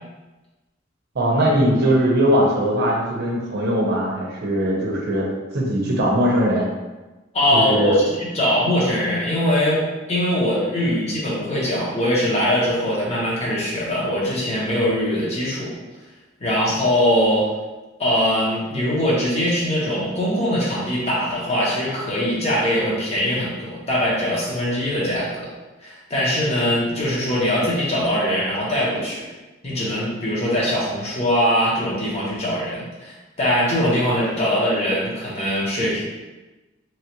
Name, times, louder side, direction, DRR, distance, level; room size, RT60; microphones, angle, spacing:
voice 1, 1.1-5.3 5.5-6.7 7.5-8.0, equal, 55° right, -2 dB, 0.7 m, -20 dB
voice 2, 7.3-15.7 16.4-17.5 18.0-25.5 25.8-29.3 29.6-36.0, equal, 35° left, -6 dB, 0.9 m, -22 dB
3.0 x 2.4 x 2.9 m, 1.1 s
head